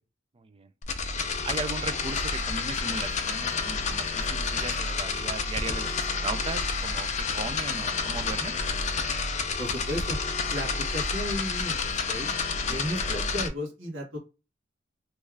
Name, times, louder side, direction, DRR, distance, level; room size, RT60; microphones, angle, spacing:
voice 1, 0.4-0.7 1.5-8.6 12.7-12.8, right 3 dB, 30° right, 0.4 m, -37 dB
sound 1, 0.8-13.5, left 4 dB, 40° left, 0.5 m, -29 dB
voice 2, 9.6-10.2 10.5-12.3 12.7-14.2, equal, 75° right, 1.4 m, -34 dB
3.2 x 2.4 x 3.2 m
head